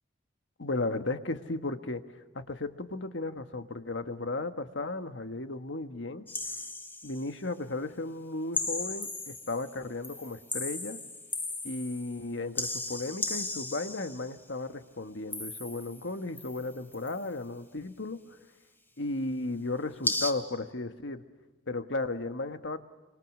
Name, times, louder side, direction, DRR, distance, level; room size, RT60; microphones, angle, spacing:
voice 1, 0.6-2.0 2.3-6.2 7.0-11.0 11.6-18.2 19.0-21.2 21.7-22.8, left 2 dB, 80° left, 8 dB, 1.5 m, -35 dB
sound 1, 6.3-7.3 8.5-9.8 10.0-12.2 12.5-14.3 15.3-16.1 16.4-17.2 20.0-20.3, left 2 dB, 10° left, 2.4 m, -35 dB
26.0 x 25.5 x 6.2 m, 1.3 s
head